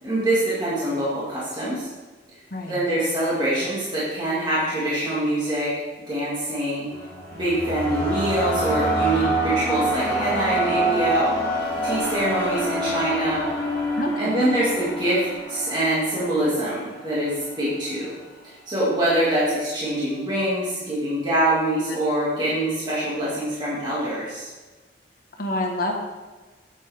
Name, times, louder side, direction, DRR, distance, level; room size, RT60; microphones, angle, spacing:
voice 1, 0.0-1.9 2.7-5.7 6.1-6.9 7.3-13.4 14.2-18.2 18.4-24.5, right 1 dB, 25° right, -9 dB, 2.3 m, -24 dB
sound 1, 6.9-17.1, right 1 dB, 10° left, 2.4 m, -26 dB
voice 2, 13.9-14.5 25.4-25.9, left 1 dB, 55° left, 1 dB, 1.4 m, -28 dB
8.3 x 7.9 x 3.6 m, 1.3 s
head